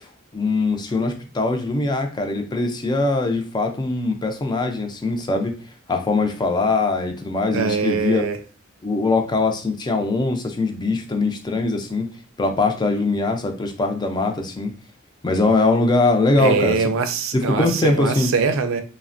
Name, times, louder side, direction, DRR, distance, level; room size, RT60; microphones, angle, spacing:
voice 1, 0.3-5.5 5.9-8.2 8.8-12.1 12.4-14.7 15.2-16.8 17.3-18.3, left 3 dB, 20° left, 0.4 m, -21 dB
voice 2, 7.5-8.4 16.4-18.8, right 5 dB, 90° right, 0.4 m, -22 dB
3.3 x 2.1 x 2.5 m
head